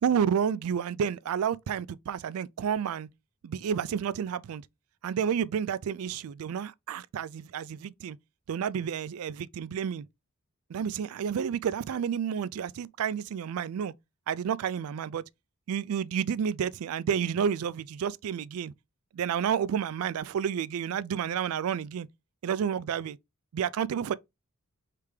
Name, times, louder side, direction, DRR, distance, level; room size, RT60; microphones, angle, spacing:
voice 1, 0.0-3.1 3.4-4.7 5.0-8.2 8.5-10.1 10.7-13.9 14.3-15.2 15.7-18.7 19.1-22.1 22.4-23.2 23.5-24.1, right 8 dB, 70° right, 0.3 m, -30 dB
3.3 x 3.3 x 4.8 m
head